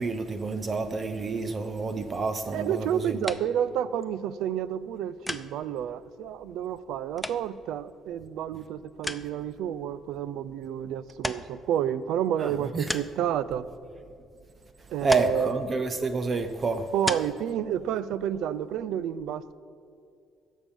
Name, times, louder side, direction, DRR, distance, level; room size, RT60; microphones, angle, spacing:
voice 1, 0.0-3.2 12.4-12.9 15.0-16.9, right 4 dB, 35° right, 9 dB, 0.6 m, -29 dB
voice 2, 2.5-13.7 14.9-15.6 16.9-19.5, right 10 dB, 75° right, 17 dB, 0.4 m, -30 dB
sound 1, 3.2-18.8, left 1 dB, 5° left, 0.5 m, -40 dB
13.5 x 5.4 x 7.1 m, 2.4 s
cardioid pair, 95°, 0 cm